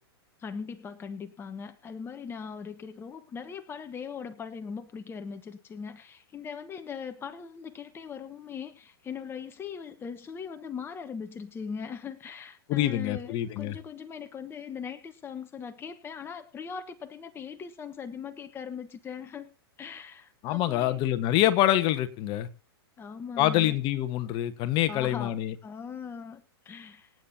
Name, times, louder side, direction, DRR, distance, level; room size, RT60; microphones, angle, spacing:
voice 1, 0.4-19.5 19.8-21.0 23.0-23.8 24.9-27.1, left 6 dB, 15° left, 1.1 m, -40 dB
voice 2, 12.7-13.7 20.4-22.5 23.4-25.5, left 13 dB, 35° left, 1.3 m, -26 dB
26.0 x 8.8 x 2.8 m
hypercardioid pair, 125°, 13 cm